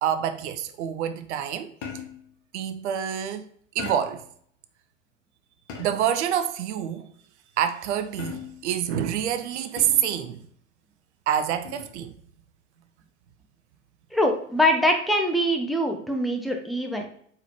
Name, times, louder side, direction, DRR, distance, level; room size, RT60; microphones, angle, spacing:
voice 1, 0.0-1.7 2.5-3.5 3.7-4.2 5.8-7.1 7.6-10.5 11.3-12.1, right 9 dB, 60° right, 0.7 m, -27 dB
sound 1, 1.8-2.3 3.8-4.3 5.7-6.2 8.2-8.7 9.8-10.2 11.6-12.0, left 6 dB, 40° left, 1.1 m, -39 dB
voice 2, 14.1-17.0, equal, ahead, 0.4 m, -23 dB
4.4 x 3.9 x 3.0 m
figure-of-eight pair, 95°, 39 cm